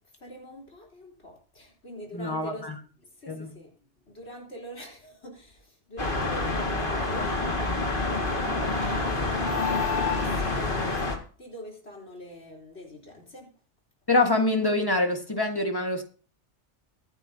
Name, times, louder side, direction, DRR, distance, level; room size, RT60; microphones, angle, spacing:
voice 1, 0.2-2.7 3.2-3.7 4.1-13.5, left 1 dB, 70° left, -1 dB, 4.1 m, -43 dB
voice 2, 2.1-2.8 3.3-3.5 14.1-16.0, left 2 dB, 20° left, 4 dB, 1.5 m, -25 dB
sound 1, 6.0-11.2, left 3 dB, 50° left, 2.1 m, -27 dB
23.5 x 9.1 x 2.8 m, 0.41 s
omnidirectional pair, 1.2 m